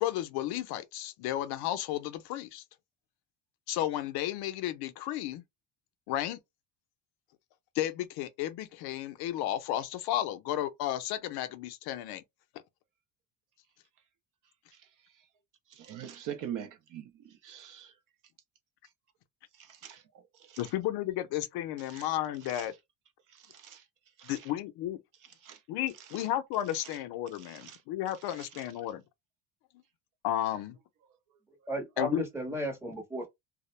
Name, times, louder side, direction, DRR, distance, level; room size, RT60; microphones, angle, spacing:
voice 1, 0.0-2.6 3.7-5.4 6.1-6.4 7.8-12.2 20.6-22.7 24.2-25.0 25.7-29.0 30.2-30.8 32.0-32.2, left 13 dB, 65° left, 0.5 m, -33 dB
voice 2, 15.7-17.9 19.6-20.7 21.9-22.1 22.4-22.7 23.3-23.8 24.2-24.5 25.4-25.6 26.1-26.3 26.8-27.0 27.4-27.8 28.2-28.6, right 10 dB, 50° right, 0.5 m, -44 dB
voice 3, 31.7-33.3, equal, 5° right, 0.7 m, -34 dB
2.3 x 2.0 x 3.0 m
cardioid pair, 140°, 41 cm